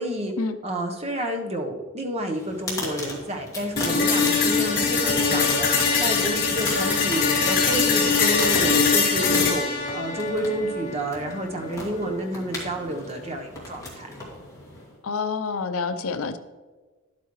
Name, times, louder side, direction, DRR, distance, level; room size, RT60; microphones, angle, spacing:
voice 1, 0.0-0.3 0.6-9.7 9.9-14.1, right 1 dB, 30° right, 3 dB, 1.0 m, -30 dB
sound 1, 2.3-15.0, left 2 dB, 15° left, 2.2 m, -37 dB
sound 2, 3.8-11.8, left 5 dB, 40° left, 1.9 m, -22 dB
voice 2, 15.0-16.4, left 4 dB, 70° left, 10 dB, 0.6 m, -27 dB
11.0 x 8.4 x 3.1 m, 1.3 s
head